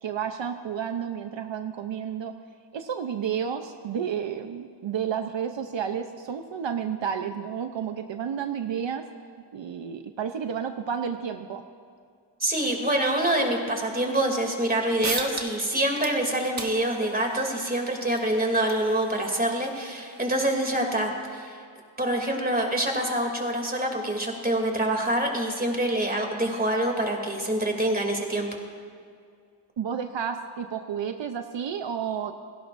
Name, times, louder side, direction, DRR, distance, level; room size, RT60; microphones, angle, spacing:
voice 1, 0.0-2.3 2.7-9.1 9.5-11.6 29.8-32.3, right 8 dB, 75° right, 6 dB, 0.8 m, -31 dB
voice 2, 12.4-21.6 22.0-28.5, right 1 dB, 20° right, 1 dB, 2.8 m, -26 dB
sound 1, 14.7-14.8 15.0-15.7 15.9-21.1, right 3 dB, 40° right, 1.7 m, -39 dB
29.0 x 17.5 x 2.6 m, 2.2 s
wide cardioid pair, 85°, 45 cm